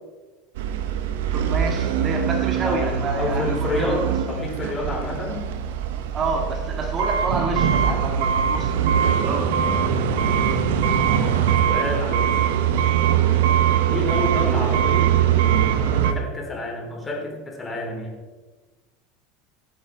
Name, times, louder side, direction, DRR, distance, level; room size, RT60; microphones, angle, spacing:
sound 1, 0.6-16.1, right 8 dB, 70° right, 1.2 m, -22 dB
voice 1, 1.3-4.0 6.1-8.7 9.2-9.5, right 2 dB, 35° right, 2 dB, 2.5 m, -28 dB
voice 2, 2.6-5.5 10.2-10.6 11.7-12.5 13.8-15.2 15.7-18.2, left 2 dB, 20° left, 1 dB, 3.9 m, -29 dB
16.5 x 9.5 x 4.7 m, 1.3 s
hypercardioid pair, 75°, 0 cm